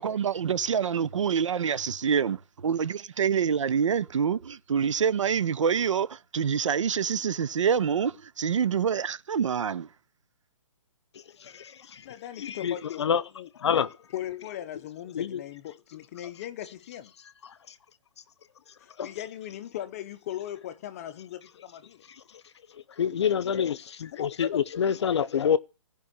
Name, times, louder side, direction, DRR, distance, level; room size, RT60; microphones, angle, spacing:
voice 1, 0.0-9.9, right 7 dB, 70° right, 0.8 m, -26 dB
voice 2, 11.5-12.0 12.4-13.2 13.6-13.9 15.1-15.4 19.0-19.1 23.0-25.6, left 8 dB, 60° left, 0.8 m, -27 dB
voice 3, 12.0-13.0 13.3-13.5 14.1-17.1 18.8-22.1 24.1-24.6, left 12 dB, 30° left, 0.7 m, -38 dB
15.0 x 5.4 x 9.8 m
hypercardioid pair, 160°, 16 cm